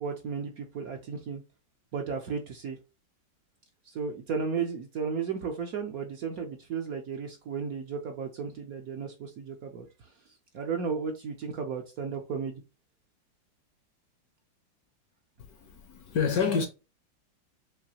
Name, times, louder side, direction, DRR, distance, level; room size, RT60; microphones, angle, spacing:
voice 1, 0.0-1.4 1.9-2.8 3.9-10.1 10.5-12.6, right 6 dB, 60° right, 1.0 m, -34 dB
voice 2, 15.4-16.7, left 6 dB, 60° left, 1.1 m, -28 dB
5.8 x 2.7 x 2.8 m
omnidirectional pair, 2.1 m